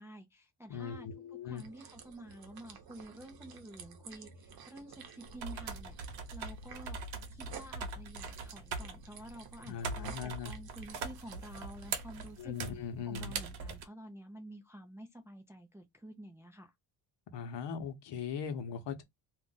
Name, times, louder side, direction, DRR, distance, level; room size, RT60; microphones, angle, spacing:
voice 1, 0.0-6.0 6.3-12.6 13.0-16.7, right 1 dB, 5° right, 0.4 m, -50 dB
voice 2, 0.7-1.6 9.6-10.5 12.4-13.3 17.3-19.0, left 6 dB, 65° left, 0.9 m, -39 dB
sound 1, 1.6-12.4, right 6 dB, 50° right, 0.8 m, -53 dB
sound 2, 5.2-13.8, right 4 dB, 75° right, 1.0 m, -42 dB
2.5 x 2.2 x 3.8 m
cardioid pair, 120°, 47 cm